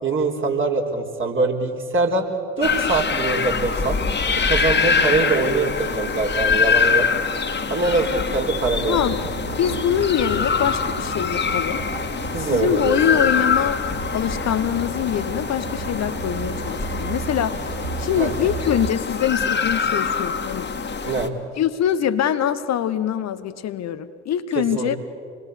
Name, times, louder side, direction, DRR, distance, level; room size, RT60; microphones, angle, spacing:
voice 1, 0.0-2.3 2.6-4.0 4.4-7.1 7.7-9.0 12.3-13.3 18.2-18.5 21.0-21.3 24.6-25.0, right 3 dB, 35° right, 1 dB, 4.1 m, -23 dB
sound 1, 2.6-21.3, left 5 dB, 30° left, 2.0 m, -24 dB
voice 2, 8.9-9.2 9.6-11.8 12.3-13.8 14.1-20.7 21.6-25.0, left 9 dB, 45° left, 11 dB, 1.1 m, -24 dB
sound 2, 8.9-18.9, right 4 dB, 65° right, 3.8 m, -34 dB
27.0 x 21.0 x 8.2 m, 2.2 s
figure-of-eight pair, 50°, 36 cm